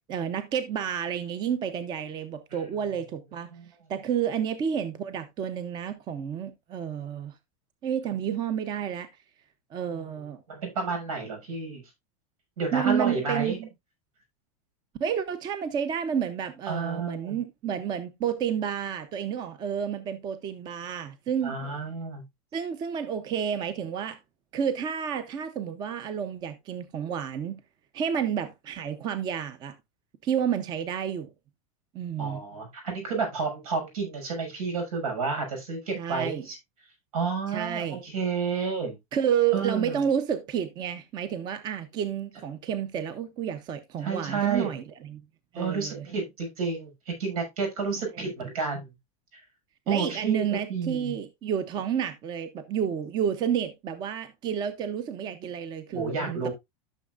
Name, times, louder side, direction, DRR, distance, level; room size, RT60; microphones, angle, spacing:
voice 1, 0.1-3.5 3.9-7.4 7.8-9.1 9.7-10.4 12.7-13.7 15.0-21.6 22.5-24.2 24.5-27.6 27.9-29.8 30.2-31.3 31.9-32.4 35.9-36.5 37.5-38.0 39.1-45.2 45.5-46.1 48.4-48.5 49.9-56.5, right 8 dB, 25° right, 0.7 m, -30 dB
voice 2, 10.5-11.8 12.6-13.6 16.7-17.4 21.4-22.2 32.2-36.6 37.1-39.0 39.5-40.0 44.0-44.7 45.5-48.9 49.3-49.4 49.9-50.4 50.7-51.1 55.9-56.5, right 5 dB, 90° right, 6.0 m, -30 dB
13.0 x 6.4 x 2.5 m
supercardioid pair, 165°, 18 cm